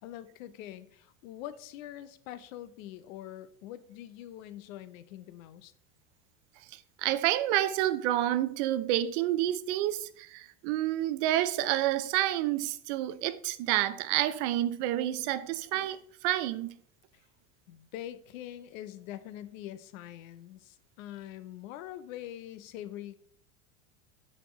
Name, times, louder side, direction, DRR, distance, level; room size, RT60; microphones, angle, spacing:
voice 1, 0.0-5.7 17.1-17.2 17.7-23.1, left 12 dB, 75° left, 0.7 m, -44 dB
voice 2, 6.7-16.7, right 13 dB, 55° right, 0.6 m, -29 dB
10.0 x 4.3 x 3.1 m
supercardioid pair, 140°, 41 cm